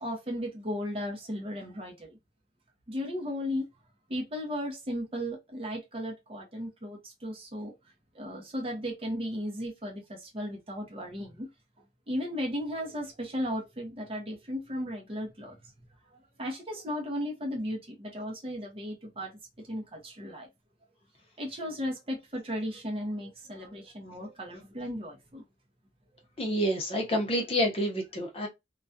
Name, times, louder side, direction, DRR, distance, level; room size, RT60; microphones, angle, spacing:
voice 1, 0.0-2.2 2.9-3.7 4.1-7.7 8.1-11.5 12.1-15.6 16.4-19.3 19.7-20.5 21.4-25.4, equal, 30° right, 0.6 m, -35 dB
voice 2, 26.4-28.5, equal, 35° left, 0.6 m, -28 dB
2.3 x 2.2 x 2.5 m
head